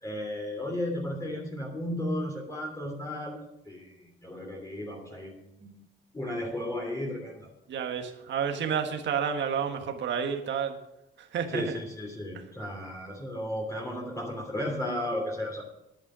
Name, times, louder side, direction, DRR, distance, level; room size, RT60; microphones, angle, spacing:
voice 1, 0.0-5.7 6.1-7.5 11.5-15.6, left 1 dB, 15° left, -2 dB, 2.9 m, -34 dB
voice 2, 7.7-10.8 11.2-11.8 12.3-12.4, right 7 dB, 70° right, 5 dB, 1.5 m, -30 dB
11.0 x 9.1 x 6.1 m, 0.87 s
cardioid pair, 90°, 20 cm